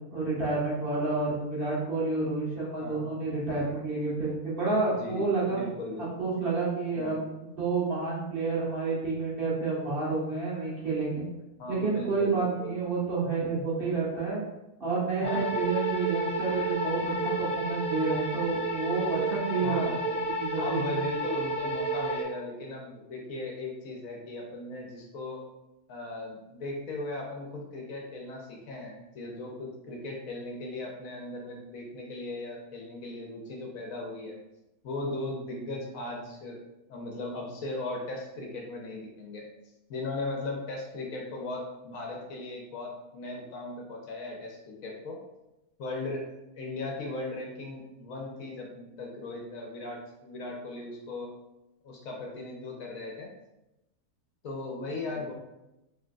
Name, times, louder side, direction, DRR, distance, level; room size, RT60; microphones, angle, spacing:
voice 1, 0.1-5.6 6.0-11.3 11.7-14.4 14.8-20.0 20.4-20.9, right 4 dB, 40° right, -8 dB, 1.4 m, -29 dB
voice 2, 2.8-3.1 5.0-6.3 6.9-7.2 11.6-12.7 15.2-15.5 19.6-20.0 20.6-25.4 25.9-34.4 34.8-36.6 36.9-39.4 39.9-45.2 45.8-46.3 46.6-51.3 51.8-53.3 54.4-55.3, left 2 dB, 65° left, 0 dB, 1.1 m, -38 dB
sound 1, 15.2-22.2, right 2 dB, 10° left, 0.4 m, -31 dB
4.8 x 3.1 x 2.3 m, 0.95 s
omnidirectional pair, 1.6 m